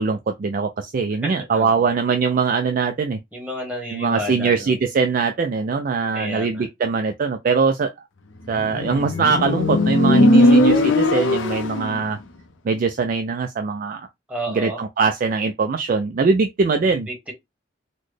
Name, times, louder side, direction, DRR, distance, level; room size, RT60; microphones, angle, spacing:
voice 1, 0.0-3.2 3.9-7.9 8.5-12.2 12.6-14.1 14.5-17.1, right 4 dB, 45° right, 0.3 m, -22 dB
voice 2, 1.2-1.8 3.3-4.8 6.1-6.7 10.4-10.7 14.3-14.8 16.8-17.3, equal, 5° right, 1.2 m, -31 dB
Motorcycle, 8.5-12.0, left 1 dB, 70° left, 0.5 m, -18 dB
4.1 x 2.1 x 3.1 m
head